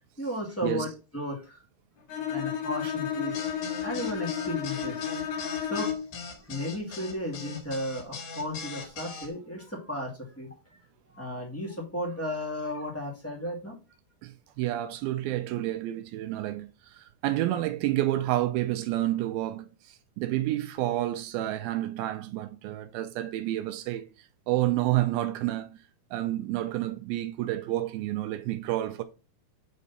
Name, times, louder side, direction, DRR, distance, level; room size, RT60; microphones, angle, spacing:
voice 1, 0.2-1.6 2.3-3.4 3.8-5.9 6.4-10.5 11.2-13.7, left 1 dB, 10° left, 0.9 m, -34 dB
Bowed string instrument, 2.1-6.2, left 8 dB, 85° left, 3.3 m, -32 dB
sound 1, 3.3-9.3, left 5 dB, 60° left, 2.9 m, -40 dB
voice 2, 14.2-25.8 26.1-29.0, right 14 dB, 80° right, 2.3 m, -30 dB
8.2 x 4.4 x 4.1 m
omnidirectional pair, 4.5 m